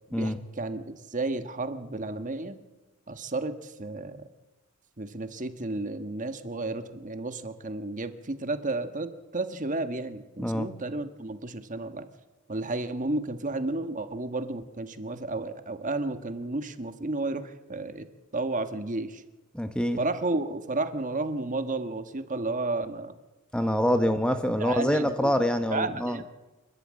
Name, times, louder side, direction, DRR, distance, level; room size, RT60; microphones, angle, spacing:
voice 1, 0.1-2.6 3.1-4.3 5.0-12.1 12.5-18.1 18.3-19.2 20.0-23.2 24.6-26.2, right 2 dB, 35° right, 9 dB, 1.4 m, -32 dB
voice 2, 19.5-20.0 23.5-26.2, equal, 5° left, 8 dB, 0.9 m, -25 dB
28.0 x 12.0 x 8.8 m, 1.1 s
head